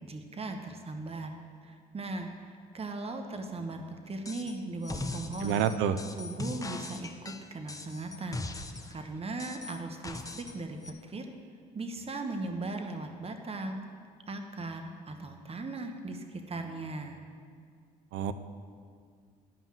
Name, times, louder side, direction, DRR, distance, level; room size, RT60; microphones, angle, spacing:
voice 1, 0.0-1.4 1.6-5.6 6.2-8.5 8.9-11.3 11.7-13.8 14.3-17.2, right 2 dB, 30° right, 5 dB, 1.1 m, -38 dB
sound 1, 4.3-4.6 4.8-9.0 9.4-10.6 10.8-10.9, left 2 dB, 15° left, 0.9 m, -40 dB
voice 2, 5.4-6.0 18.1-18.3, right 9 dB, 75° right, 12 dB, 0.6 m, -27 dB
11.0 x 5.5 x 7.4 m, 2.1 s
hypercardioid pair, 55°, 20 cm